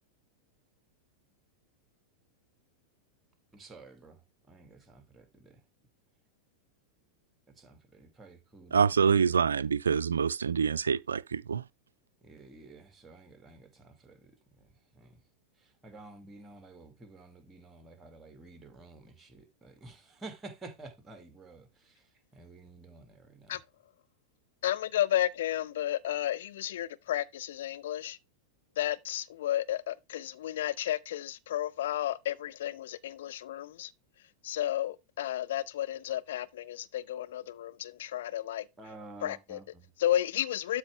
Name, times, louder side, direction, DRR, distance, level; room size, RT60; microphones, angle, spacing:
voice 1, 3.5-5.6 7.5-9.3 12.2-15.2 15.6-23.6 38.8-39.9, right 3 dB, 15° right, 2.2 m, -51 dB
voice 2, 8.7-11.6, right 6 dB, 70° right, 0.3 m, -26 dB
voice 3, 24.6-28.2 28.8-33.9 34.4-38.7 39.2-39.6 40.0-40.8, left 12 dB, 60° left, 0.6 m, -32 dB
12.0 x 4.6 x 3.3 m
figure-of-eight pair, 90°, 0 cm